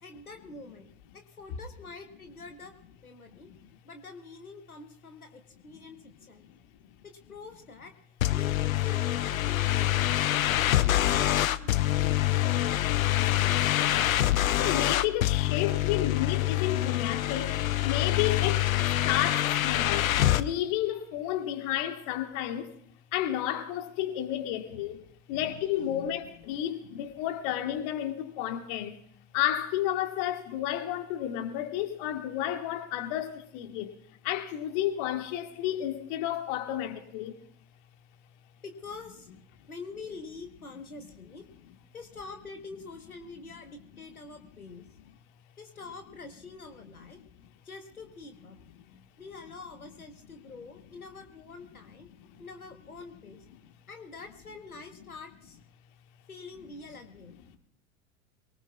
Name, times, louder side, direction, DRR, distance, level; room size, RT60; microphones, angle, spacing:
voice 1, 0.0-2.7 3.0-3.5 3.8-6.5 7.0-7.9 8.3-13.2 24.7-24.8 25.3-26.3 26.8-27.1 38.6-39.3 39.7-41.5 41.9-44.9 45.6-47.2 47.6-48.6 49.0-52.1 52.4-53.4 53.9-55.6 56.3-57.6, left 4 dB, 90° left, 1.3 m, -46 dB
sound 1, 8.2-20.4, left 14 dB, 70° left, 0.7 m, -26 dB
voice 2, 14.6-22.7 23.1-25.0 25.3-29.0 29.3-33.9 34.2-37.4 48.9-49.0 52.3-52.4 57.5-57.6, left 12 dB, 45° left, 1.6 m, -31 dB
23.0 x 19.0 x 2.4 m
figure-of-eight pair, 85°, 43 cm